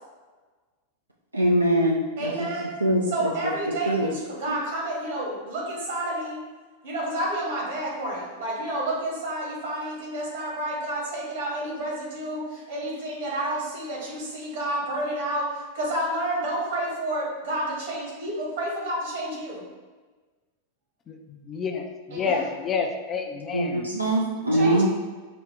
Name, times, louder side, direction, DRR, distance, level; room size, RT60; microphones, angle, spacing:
voice 1, 1.3-2.3 2.8-3.1 3.9-4.1 23.5-24.9, right 1 dB, 85° right, -2 dB, 0.4 m, -22 dB
voice 2, 2.2-6.4 6.8-19.6 22.1-22.5 24.5-24.9, right 1 dB, 60° right, -3 dB, 1.4 m, -30 dB
voice 3, 21.5-23.9 24.5-24.6, left 5 dB, 25° left, 3 dB, 0.4 m, -29 dB
4.9 x 2.2 x 3.5 m, 1.3 s
figure-of-eight pair, 90°, 0 cm